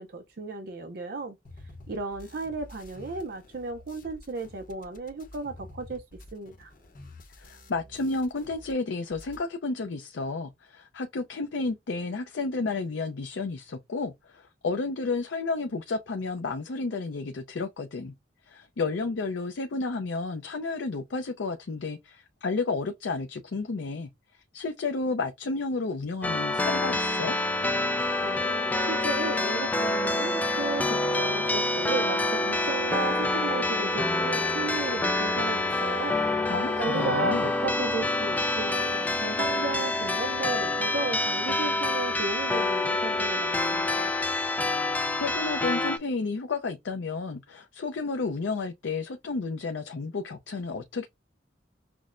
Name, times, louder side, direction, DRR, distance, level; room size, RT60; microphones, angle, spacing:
voice 1, 0.0-1.4 1.9-6.0 6.3-6.7 28.2-36.5 36.8-44.1, right 3 dB, 55° right, 0.5 m, -35 dB
sound 1, 1.4-8.7 9.0-9.4, left 2 dB, 50° left, 0.8 m, -49 dB
voice 2, 7.4-18.1 18.5-24.1 24.5-27.4 36.5-37.5 44.9-51.1, left 3 dB, 80° left, 0.5 m, -32 dB
sound 2, 26.2-46.0, left 2 dB, 10° left, 0.3 m, -27 dB
5.9 x 2.1 x 2.4 m
head